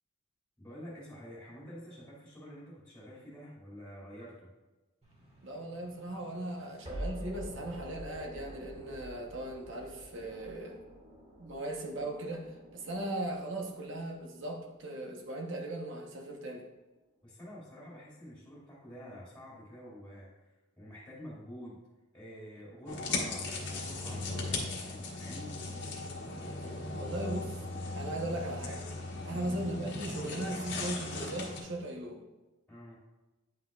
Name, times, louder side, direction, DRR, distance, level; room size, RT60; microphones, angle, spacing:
voice 1, 0.6-4.5 17.2-21.8 22.1-25.6 29.3-29.6 32.7-33.0, equal, 5° left, -7 dB, 2.2 m, -48 dB
sound 1, 5.0-16.0, equal, 25° right, 1.9 m, -47 dB
voice 2, 5.4-10.8 11.4-16.7 26.9-27.6 27.9-28.9 29.2-32.2, right 1 dB, 55° right, 2 dB, 1.0 m, -38 dB
sound 2, 22.9-31.6, left 3 dB, 55° left, 1.3 m, -38 dB
9.4 x 5.8 x 2.4 m, 1.1 s
head